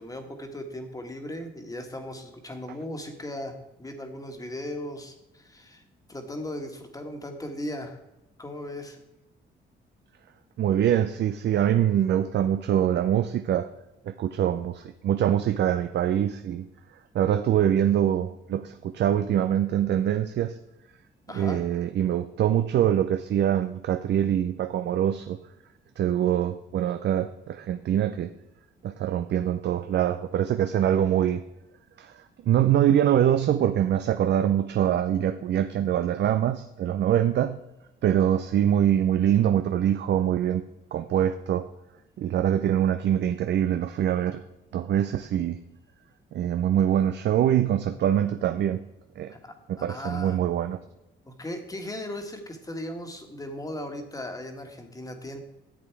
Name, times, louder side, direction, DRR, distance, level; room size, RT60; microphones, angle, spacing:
voice 1, 0.0-5.8 6.1-8.0 8.4-9.0 21.3-21.6 49.3-50.4 51.2-55.4, left 1 dB, 15° left, 5 dB, 1.7 m, -37 dB
voice 2, 10.6-13.7 14.0-20.6 21.3-25.4 26.0-28.3 28.8-31.4 32.0-37.6 38.0-40.6 40.9-41.7 42.2-44.4 44.7-45.6 46.3-48.8 49.2-49.3 49.7-50.8, right 10 dB, 60° right, 9 dB, 0.5 m, -24 dB
10.0 x 7.6 x 4.6 m, 0.94 s
cardioid pair, 90°, 20 cm